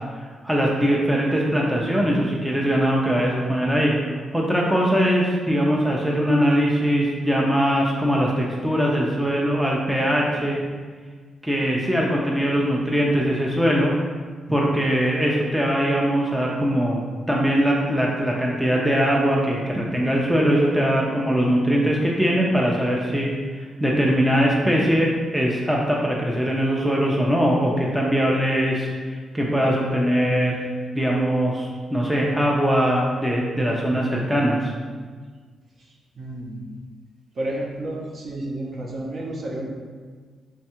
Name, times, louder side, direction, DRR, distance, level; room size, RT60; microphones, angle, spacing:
voice 1, 0.4-3.9 4.3-10.6 11.4-13.9 14.5-17.0 17.3-30.6 30.9-34.7, equal, 5° right, -3 dB, 0.4 m, -21 dB
voice 2, 36.2-36.7 37.4-39.7, right 1 dB, 45° right, -2 dB, 0.7 m, -31 dB
3.5 x 2.3 x 4.2 m, 1.5 s
cardioid pair, 115°, 0 cm